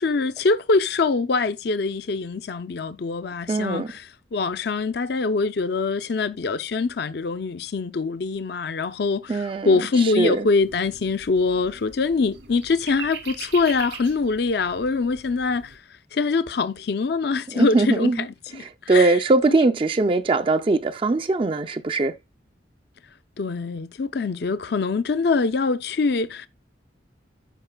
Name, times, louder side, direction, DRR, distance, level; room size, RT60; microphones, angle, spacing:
voice 1, 0.0-15.8 16.1-19.1 23.4-26.5, left 4 dB, 60° left, 0.5 m, -24 dB
voice 2, 3.5-3.9 9.3-10.5 17.5-18.3 18.9-22.2, right 3 dB, 30° right, 0.4 m, -21 dB
sound 1, 10.6-15.8, right 6 dB, 80° right, 2.2 m, -42 dB
14.5 x 5.1 x 2.2 m
head